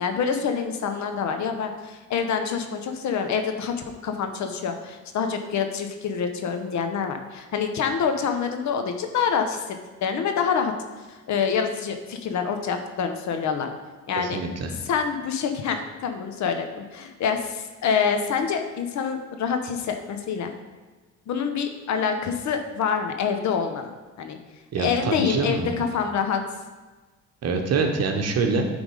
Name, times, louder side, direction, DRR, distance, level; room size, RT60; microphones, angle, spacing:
voice 1, 0.0-3.7 4.0-10.7 11.3-13.7 14.1-14.4 14.8-20.5 21.3-23.9 24.2-24.4 24.8-26.4, left 6 dB, 65° left, 6 dB, 0.9 m, -26 dB
voice 2, 14.2-14.7 24.7-25.8 27.4-28.7, right 4 dB, 55° right, 4 dB, 1.1 m, -25 dB
8.9 x 3.6 x 4.9 m, 1.3 s
cardioid pair, 100°, 31 cm